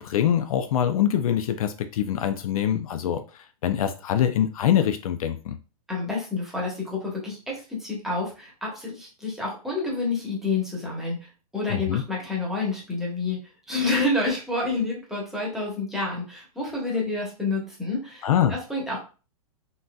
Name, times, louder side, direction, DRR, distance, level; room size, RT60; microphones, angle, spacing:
voice 1, 0.0-5.6 11.7-12.0 18.2-18.5, left 10 dB, 70° left, 9 dB, 0.4 m, -24 dB
voice 2, 5.9-13.4 13.7-19.0, left 3 dB, ahead, -4 dB, 1.0 m, -29 dB
3.7 x 2.6 x 2.2 m, 0.33 s
hypercardioid pair, 145°, 19 cm